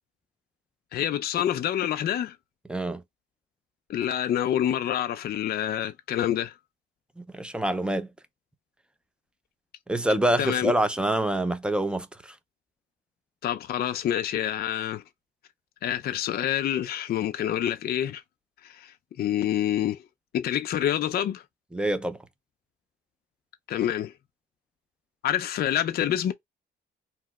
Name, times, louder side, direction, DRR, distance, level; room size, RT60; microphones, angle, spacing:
voice 1, 0.9-2.4 3.9-6.5 10.4-10.7 13.4-15.0 15.8-18.2 18.6-20.0 20.3-21.4 23.7-24.1 25.2-26.3, left 11 dB, 50° left, 0.4 m, -27 dB
voice 2, 2.7-3.0 7.2-8.1 9.9-12.3 21.7-22.2, right 1 dB, 5° right, 0.5 m, -26 dB
2.8 x 2.1 x 3.4 m
cardioid pair, 90°, 20 cm